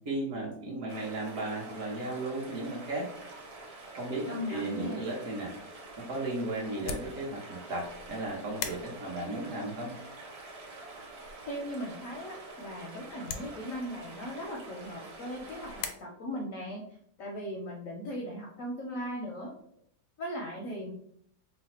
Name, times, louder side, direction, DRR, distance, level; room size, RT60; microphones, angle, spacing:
voice 1, 0.0-3.1 4.0-5.5 6.0-9.9, right 2 dB, 55° right, -3 dB, 1.1 m, -35 dB
sound 1, 0.9-15.9, right 2 dB, 90° right, 1.6 m, -47 dB
voice 2, 4.2-5.0 11.5-16.8 17.2-19.5 20.2-20.9, equal, 65° left, 0 dB, 0.8 m, -38 dB
sound 2, 6.7-15.9, left 6 dB, 90° left, 1.3 m, -45 dB
3.2 x 2.1 x 4.1 m, 0.65 s
omnidirectional pair, 1.9 m